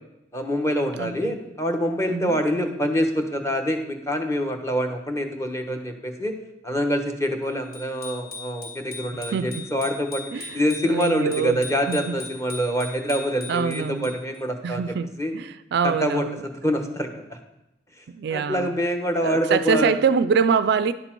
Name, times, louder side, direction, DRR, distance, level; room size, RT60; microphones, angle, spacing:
voice 1, 0.3-6.4 6.6-10.2 10.5-15.3 15.8-17.4 18.3-19.9, equal, 15° left, 4 dB, 1.0 m, -25 dB
voice 2, 1.0-1.3 2.1-2.4 9.1-9.7 10.3-11.6 11.9-12.2 13.5-14.2 14.6-16.5 18.1-18.8 19.2-20.9, right 6 dB, 60° right, 13 dB, 0.3 m, -25 dB
Bicycle bell, 7.7-14.4, left 3 dB, 55° left, 3.1 m, -39 dB
11.0 x 6.7 x 4.5 m, 0.89 s
head